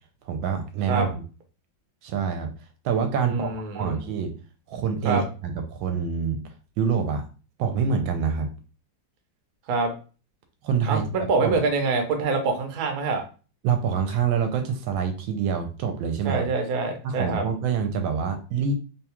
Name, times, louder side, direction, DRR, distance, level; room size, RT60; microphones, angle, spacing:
voice 1, 0.3-1.1 2.0-2.5 2.8-4.3 4.7-6.4 6.8-7.2 7.6-8.5 10.6-11.6 13.6-16.4 17.0-18.7, right 6 dB, 80° right, 5 dB, 1.3 m, -26 dB
voice 2, 3.2-4.0 5.0-5.2 9.7-9.9 10.9-13.2 16.2-17.4, right 4 dB, 60° right, 4 dB, 1.0 m, -25 dB
3.6 x 2.3 x 2.8 m, 0.35 s
omnidirectional pair, 2.2 m